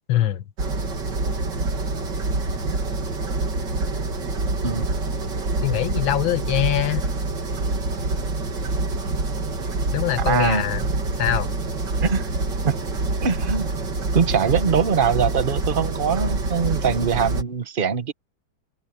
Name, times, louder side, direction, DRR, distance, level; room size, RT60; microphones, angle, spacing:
voice 1, 0.1-0.4 5.6-7.0 9.9-10.8 11.2-11.5, left 13 dB, 80° left, 1.8 m, -23 dB
sound 1, 0.6-17.4, right 3 dB, 60° right, 3.3 m, -26 dB
voice 2, 10.3-10.7 12.0-12.2 12.6-12.8 13.2-13.7 14.1-18.1, right 6 dB, 30° right, 1.1 m, -22 dB
omnidirectional pair, 2.2 m